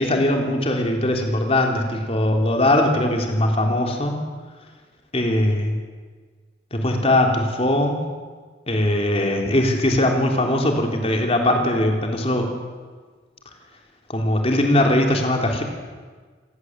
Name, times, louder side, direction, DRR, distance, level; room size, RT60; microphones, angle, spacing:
voice 1, 0.0-4.2 5.1-5.8 6.7-8.0 8.7-12.5 14.1-15.6, left 1 dB, 35° left, 2 dB, 3.5 m, -20 dB
27.5 x 16.0 x 8.0 m, 1.5 s
head